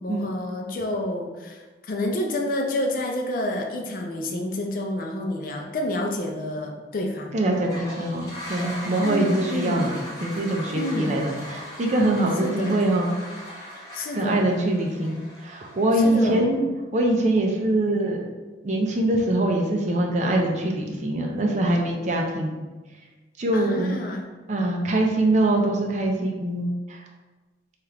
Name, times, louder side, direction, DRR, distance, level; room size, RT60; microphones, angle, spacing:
voice 1, 0.0-7.4 9.0-9.8 10.7-11.2 12.4-12.8 13.9-14.5 16.0-16.5 23.5-24.3, left 1 dB, 50° left, 2 dB, 0.4 m, -29 dB
voice 2, 7.3-9.9 10.2-13.1 14.1-18.2 18.6-22.6 23.4-24.0 24.5-27.0, right 1 dB, 40° right, 0 dB, 0.4 m, -23 dB
Toilet flush, 7.4-16.3, equal, 20° left, 0.8 m, -39 dB
2.9 x 2.4 x 3.2 m, 1.2 s
head